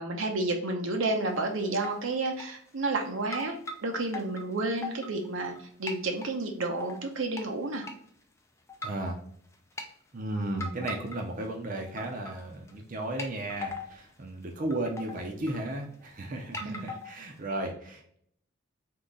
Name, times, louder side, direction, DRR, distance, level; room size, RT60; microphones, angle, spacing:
voice 1, 0.0-7.9 16.6-16.8, right 2 dB, 75° right, 3 dB, 0.8 m, -31 dB
sound 1, 1.0-1.5 1.7-2.0 2.4-3.0 3.3-5.6 5.9-6.3 6.8-7.5 7.8-8.0 8.7-9.1 9.5-9.9 10.6-11.5 11.7-12.4 12.7-12.8 13.2-14.0 14.4-14.5 14.7-16.0 16.5-17.4, left 2 dB, 15° left, 0.5 m, -40 dB
voice 2, 8.8-9.2 10.1-18.3, right 1 dB, 40° right, 2 dB, 0.6 m, -34 dB
3.7 x 2.9 x 4.0 m, 0.66 s
head